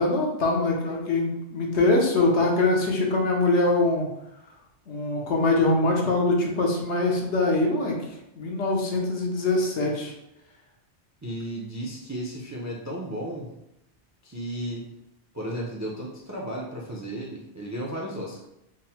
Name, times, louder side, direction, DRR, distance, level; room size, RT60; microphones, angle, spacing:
voice 1, 0.0-4.1 4.9-8.0 8.3-10.1, left 2 dB, 80° left, -1 dB, 1.1 m, -23 dB
voice 2, 11.2-13.5 14.2-14.9 15.3-18.5, right 1 dB, 25° right, -2 dB, 0.3 m, -34 dB
3.7 x 2.0 x 4.3 m, 0.84 s
omnidirectional pair, 1.2 m